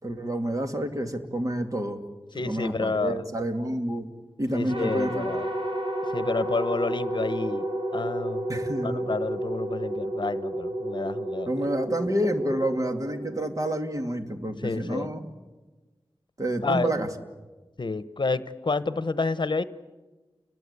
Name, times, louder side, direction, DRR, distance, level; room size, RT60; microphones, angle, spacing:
voice 1, 0.0-2.0 2.4-4.1 4.4-5.3 8.5-9.1 11.5-15.3 16.4-17.1, right 1 dB, 40° right, 5 dB, 2.5 m, -29 dB
voice 2, 2.3-3.2 4.5-5.5 6.1-7.7 7.9-8.4 8.8-11.5 14.6-15.1 16.6-16.9 17.8-19.6, left 3 dB, 60° left, 14 dB, 1.0 m, -29 dB
sound 1, 4.7-14.0, right 1 dB, 80° right, 5.6 m, -31 dB
30.0 x 21.5 x 8.3 m, 1.2 s
wide cardioid pair, 80°, 9 cm